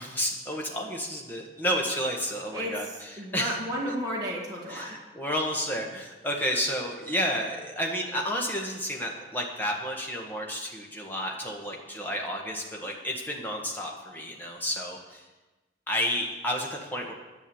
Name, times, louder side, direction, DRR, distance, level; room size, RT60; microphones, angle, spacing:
voice 1, 0.0-3.6 4.7-15.2 15.9-17.1, equal, 10° left, -1 dB, 1.6 m, -31 dB
voice 2, 2.5-5.0, equal, 20° right, -5 dB, 1.9 m, -33 dB
11.0 x 8.0 x 7.2 m, 1.1 s
head